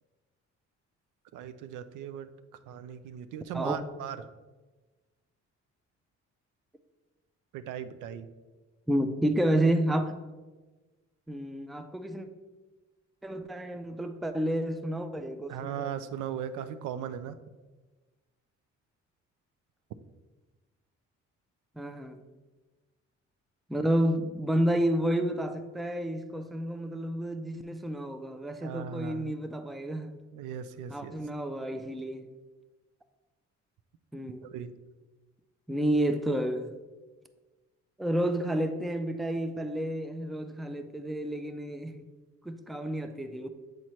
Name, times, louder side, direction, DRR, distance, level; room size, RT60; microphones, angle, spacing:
voice 1, 1.3-2.3 2.7-4.3 7.5-8.3 15.5-17.4 28.6-29.4 30.3-31.2 34.5-34.7, right 9 dB, 80° right, 11 dB, 0.5 m, -38 dB
voice 2, 8.9-10.1 11.3-12.3 13.2-15.9 21.8-22.2 23.7-30.1 30.9-32.3 34.1-34.5 35.7-36.7 38.0-42.0 42.5-43.5, right 1 dB, ahead, 9 dB, 0.3 m, -30 dB
7.8 x 4.2 x 3.1 m, 1.2 s
cardioid pair, 90°, 30 cm